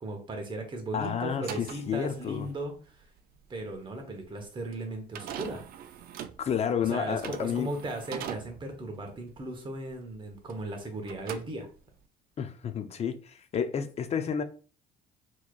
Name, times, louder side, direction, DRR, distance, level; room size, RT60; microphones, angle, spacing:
voice 1, 0.0-3.1 3.5-5.7 6.9-11.7, right 2 dB, 30° right, 1.1 m, -37 dB
voice 2, 0.9-2.5 6.4-7.7 12.4-14.4, left 7 dB, 40° left, 0.5 m, -30 dB
sound 1, 1.3-10.8 11.0-12.1, right 9 dB, 60° right, 0.4 m, -43 dB
4.5 x 3.0 x 2.4 m
cardioid pair, 110°, 17 cm